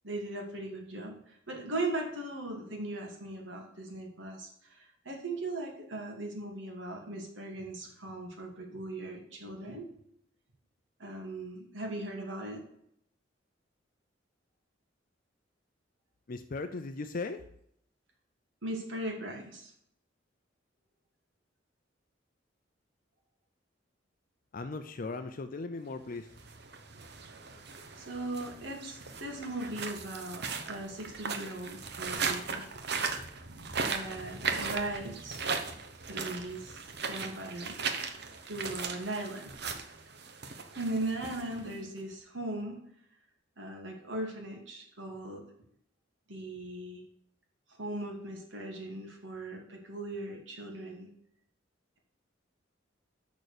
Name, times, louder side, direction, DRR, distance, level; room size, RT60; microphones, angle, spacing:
voice 1, 0.0-9.9 11.0-12.6 18.6-19.7 28.0-32.6 33.8-35.4 36.1-36.8 37.1-37.8 38.5-39.5 40.8-42.8 43.6-45.4 46.3-47.0 47.7-51.1, right 2 dB, 80° right, 1 dB, 2.5 m, -38 dB
voice 2, 16.3-17.5 24.5-26.3, left 3 dB, 50° left, 9 dB, 0.6 m, -38 dB
sound 1, 26.3-42.0, right 5 dB, 60° right, 1.1 m, -38 dB
6.7 x 6.2 x 6.6 m, 0.70 s
head